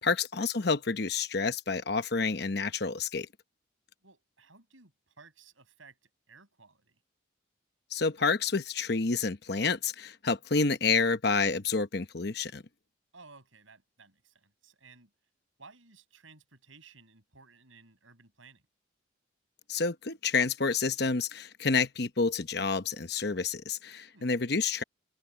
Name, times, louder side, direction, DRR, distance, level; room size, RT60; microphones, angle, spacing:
voice 1, 0.0-3.3 7.9-12.6 19.7-24.8, left 4 dB, 55° left, 1.0 m, -29 dB
voice 2, 4.0-7.0 13.1-15.1 15.6-18.6 24.1-24.3, right 4 dB, 85° right, 8.0 m, -57 dB
head